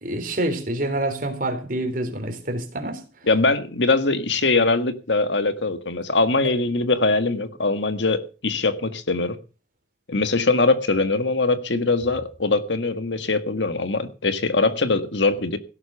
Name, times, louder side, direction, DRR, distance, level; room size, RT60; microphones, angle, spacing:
voice 1, 0.0-3.0, right 1 dB, 45° right, 3.8 m, -27 dB
voice 2, 3.3-9.4 10.1-15.6, left 3 dB, 70° left, 1.7 m, -22 dB
17.0 x 8.6 x 6.9 m
head